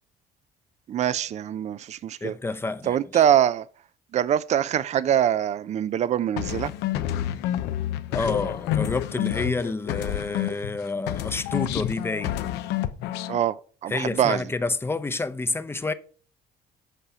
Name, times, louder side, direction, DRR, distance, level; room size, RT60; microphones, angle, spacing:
voice 1, 0.9-2.3 2.9-3.6 4.1-6.7 13.3-13.6 13.8-14.4, right 10 dB, 40° right, 0.5 m, -23 dB
voice 2, 2.2-3.2 8.1-12.4 13.9-15.9, left 3 dB, 15° left, 0.7 m, -29 dB
sound 1, 6.4-10.8 11.1-13.4, left 12 dB, 90° left, 0.7 m, -29 dB
8.3 x 5.5 x 4.9 m
cardioid pair, 110°, 17 cm